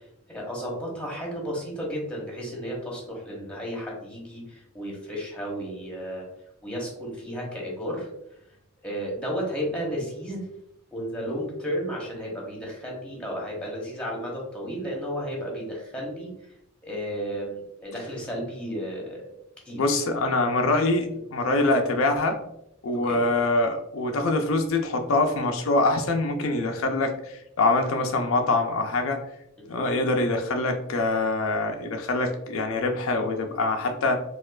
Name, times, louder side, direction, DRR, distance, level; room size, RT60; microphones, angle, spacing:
voice 1, 0.3-6.3 6.6-8.1 8.8-10.5 10.9-16.3 16.8-19.2 19.7-19.8 22.9-23.2 24.1-24.3 29.7-29.8, equal, 5° left, -2 dB, 1.0 m, -33 dB
voice 2, 19.8-22.4 22.8-29.2 29.7-34.2, left 2 dB, 80° left, 4 dB, 0.5 m, -24 dB
4.2 x 2.4 x 2.3 m, 0.78 s
head